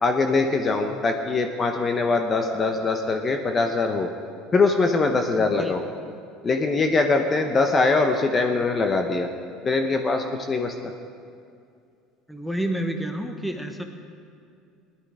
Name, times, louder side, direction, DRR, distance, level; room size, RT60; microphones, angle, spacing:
voice 1, 0.0-4.1 4.5-5.8 6.4-9.3 9.6-10.7, left 3 dB, 30° left, 5 dB, 0.9 m, -22 dB
voice 2, 5.4-5.7 6.9-7.0 12.3-13.8, right 1 dB, ahead, 5 dB, 1.2 m, -29 dB
17.0 x 11.0 x 4.9 m, 2.4 s
supercardioid pair, 110°, 0 cm